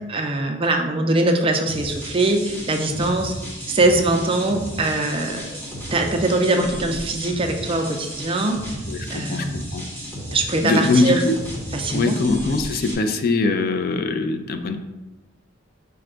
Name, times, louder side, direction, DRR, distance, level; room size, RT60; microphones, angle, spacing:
voice 1, 0.1-3.3 3.7-5.5 5.9-8.8 9.1-9.7 10.3-11.2 11.7-12.2, right 2 dB, 25° right, 4 dB, 0.4 m, -22 dB
sound 1, 1.7-12.9, equal, 10° left, 0.8 m, -34 dB
voice 2, 8.8-9.9 10.6-11.4 11.9-14.8, left 3 dB, 50° left, 7 dB, 0.3 m, -22 dB
5.2 x 2.2 x 3.7 m, 1.1 s
head